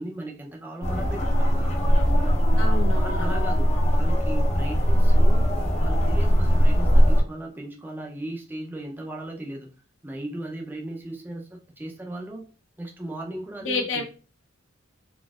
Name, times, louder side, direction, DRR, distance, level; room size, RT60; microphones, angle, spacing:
voice 1, 0.0-1.8 2.9-3.7 3.9-5.4 5.8-9.7 10.0-12.4 12.8-14.0, right 1 dB, 10° right, 0 dB, 0.5 m, -37 dB
sound 1, 0.8-7.2, equal, 35° left, 0.6 m, -20 dB
voice 2, 2.6-3.6 13.6-14.0, left 3 dB, 70° left, 3 dB, 0.8 m, -30 dB
4.0 x 2.6 x 2.3 m, 0.37 s
head